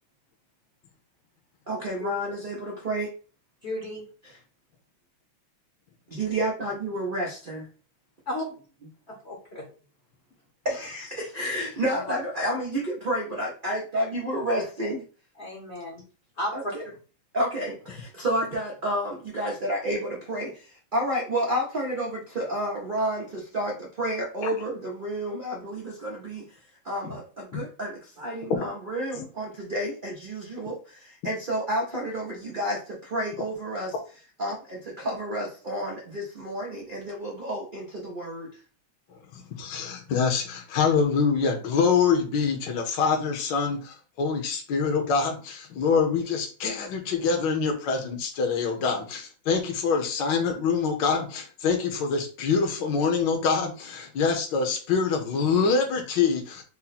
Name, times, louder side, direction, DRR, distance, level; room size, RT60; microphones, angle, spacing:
voice 1, 1.7-3.1 6.1-7.6 10.6-15.0 16.5-16.8 17.3-26.4 26.8-33.9 34.4-38.5, right 1 dB, 80° right, -3 dB, 0.4 m, -30 dB
voice 2, 3.6-4.0 8.3-8.4 9.1-9.7 11.9-12.0 15.4-16.0 16.4-16.5, left 1 dB, 45° left, -1 dB, 0.8 m, -33 dB
voice 3, 39.3-56.6, left 5 dB, 65° left, 2 dB, 1.5 m, -25 dB
4.3 x 2.1 x 4.0 m, 0.37 s
omnidirectional pair, 2.2 m